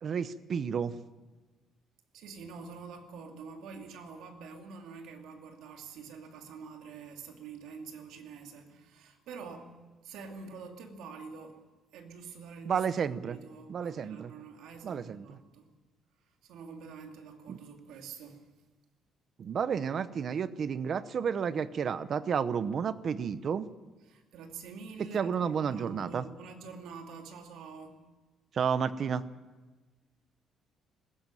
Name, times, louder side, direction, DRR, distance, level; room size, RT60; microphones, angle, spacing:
voice 1, 0.0-0.9 12.7-13.4 13.7-14.3 14.8-15.4 17.5-17.6 19.4-23.7 25.1-26.2 28.5-29.2, right 7 dB, 40° right, 14 dB, 0.8 m, -31 dB
voice 2, 2.1-9.7 10.0-11.6 11.9-12.8 13.2-15.7 16.4-18.5 24.1-28.0, right 5 dB, 85° right, 3 dB, 2.6 m, -46 dB
20.0 x 16.0 x 9.0 m, 1.2 s
cardioid pair, 170°, 0 cm